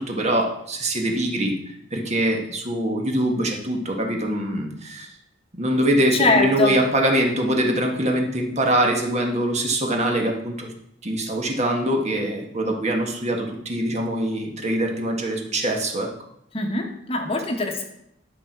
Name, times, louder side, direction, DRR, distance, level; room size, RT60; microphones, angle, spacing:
voice 1, 0.0-1.5 1.9-5.1 5.6-10.7 11.0-16.1, right 1 dB, 35° right, 1 dB, 1.6 m, -23 dB
voice 2, 6.1-6.8 16.5-17.8, left 2 dB, 30° left, 3 dB, 1.1 m, -22 dB
11.5 x 6.0 x 4.7 m, 0.77 s
head